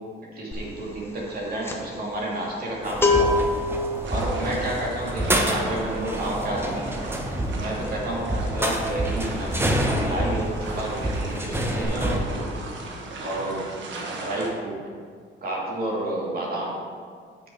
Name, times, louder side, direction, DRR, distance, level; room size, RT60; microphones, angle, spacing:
voice 1, 0.3-3.5 4.1-7.0 7.5-12.5 13.2-13.8 14.1-14.8 15.4-16.8, right 1 dB, 50° right, -4 dB, 2.5 m, -30 dB
sound 1, 0.5-9.6 9.9-10.1 10.4-11.2 11.5-11.8, left 3 dB, 10° left, 1.3 m, -28 dB
sound 2, 2.8-12.2, right 1 dB, 10° right, 1.1 m, -28 dB
sound 3, 4.0-14.5, right 2 dB, 70° right, 1.5 m, -38 dB
9.2 x 5.9 x 4.8 m, 2.1 s
cardioid pair, 90°, 20 cm